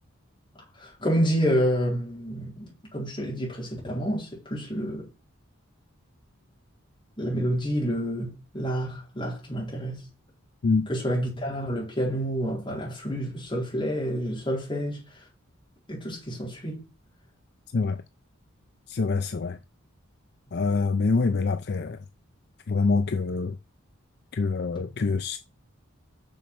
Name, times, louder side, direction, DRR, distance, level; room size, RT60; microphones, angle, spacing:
voice 1, 0.8-5.1 7.2-10.1 10.9-15.0 15.9-16.8, equal, 25° left, 4.4 m, -28 dB
voice 2, 18.9-19.6 20.5-22.0 22.7-23.6 24.3-25.4, left 4 dB, 50° left, 0.5 m, -25 dB
7.2 x 6.2 x 6.0 m
head